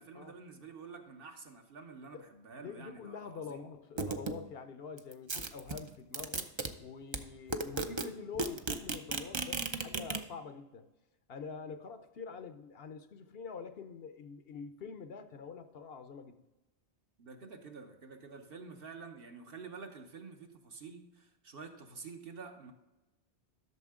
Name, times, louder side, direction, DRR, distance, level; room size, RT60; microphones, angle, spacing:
voice 1, 0.0-3.7 17.2-22.7, right 5 dB, 60° right, 4 dB, 1.2 m, -49 dB
voice 2, 2.6-6.5 6.8-10.8 11.3-16.4, left 5 dB, 65° left, 9 dB, 0.9 m, -46 dB
sound 1, 4.0-4.4 5.0-6.7 7.1-7.2 7.5-8.0 8.3-10.2, right 3 dB, 35° right, 0.5 m, -35 dB
12.0 x 6.6 x 3.6 m, 1.0 s
omnidirectional pair, 1.1 m